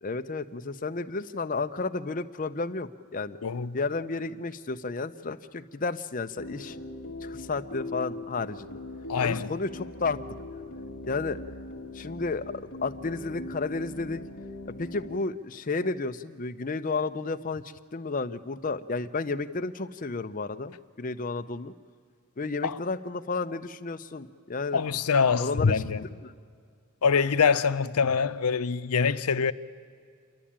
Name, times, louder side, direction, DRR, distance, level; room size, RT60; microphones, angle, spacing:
voice 1, 0.0-3.4 3.7-6.8 7.2-8.8 9.2-10.2 11.1-11.4 11.9-14.2 14.8-21.7 22.4-24.8 25.4-25.8 26.2-26.3, left 3 dB, 35° left, 0.6 m, -32 dB
voice 2, 3.4-3.8 9.1-9.5 22.6-22.8 24.7-26.1 27.0-29.5, left 5 dB, 90° left, 0.7 m, -24 dB
sound 1, 6.4-15.2, left 2 dB, 55° left, 1.2 m, -41 dB
29.0 x 11.5 x 8.7 m
head